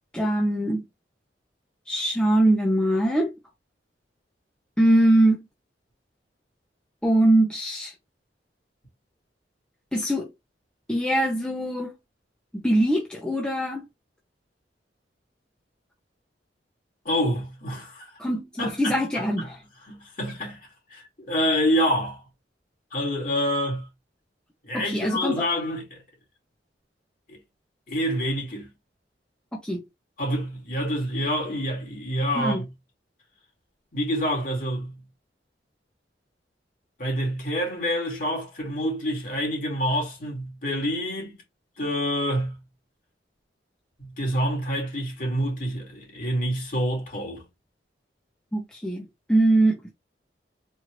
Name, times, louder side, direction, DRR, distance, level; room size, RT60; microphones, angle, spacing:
voice 1, 0.1-0.8 1.9-3.3 4.8-5.4 7.0-7.9 9.9-10.3 10.9-11.9 12.5-13.8 18.2-19.6 24.7-25.5 29.6-29.8 32.3-32.6 48.5-49.8, right 1 dB, 5° left, 0.8 m, -22 dB
voice 2, 17.1-18.2 18.6-19.5 19.9-20.6 20.9-22.2 22.9-23.9 24.6-26.0 27.3-27.4 27.9-28.7 30.2-32.7 33.9-35.0 37.0-41.3 41.8-42.6 44.0-47.4, equal, 50° left, 2.3 m, -27 dB
4.4 x 2.7 x 3.1 m
head